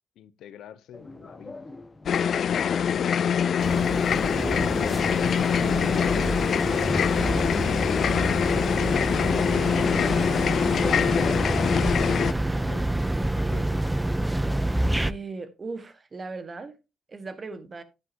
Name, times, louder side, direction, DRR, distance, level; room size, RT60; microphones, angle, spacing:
voice 1, 0.2-1.7 2.6-3.4 4.5-5.9 12.5-13.9, left 9 dB, 80° left, 0.9 m, -46 dB
sound 1, 0.9-14.6, left 3 dB, 20° left, 1.3 m, -43 dB
sound 2, 2.1-12.3, left 8 dB, 55° left, 0.4 m, -24 dB
sound 3, 3.6-15.1, right 1 dB, 10° right, 0.5 m, -27 dB
voice 2, 15.0-16.8 17.1-17.8, right 4 dB, 35° right, 1.7 m, -37 dB
10.0 x 9.8 x 2.9 m
cardioid pair, 90°, 0 cm